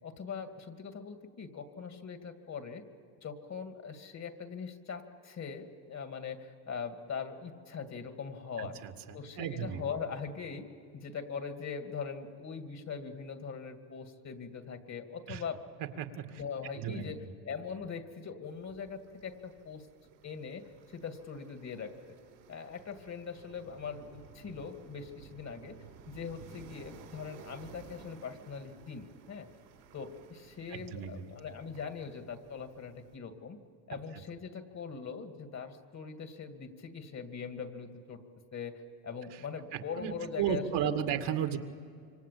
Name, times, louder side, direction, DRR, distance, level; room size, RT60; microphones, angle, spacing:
voice 1, 0.0-2.8 3.2-8.8 9.1-10.6 10.9-15.6 16.3-19.9 20.2-22.2 22.5-25.7 26.1-29.5 29.9-33.6 33.9-38.2 38.5-40.9, left 6 dB, 35° left, 7 dB, 2.5 m, -41 dB
voice 2, 8.6-9.8 15.3-15.4 16.0-16.4 16.8-17.3 30.7-31.3 33.9-34.0 39.7-41.6, right 9 dB, 55° right, 6 dB, 2.2 m, -35 dB
sound 1, 18.5-33.2, right 6 dB, 85° right, 4.7 m, -56 dB
27.0 x 24.5 x 8.6 m, 2.3 s
supercardioid pair, 90°, 47 cm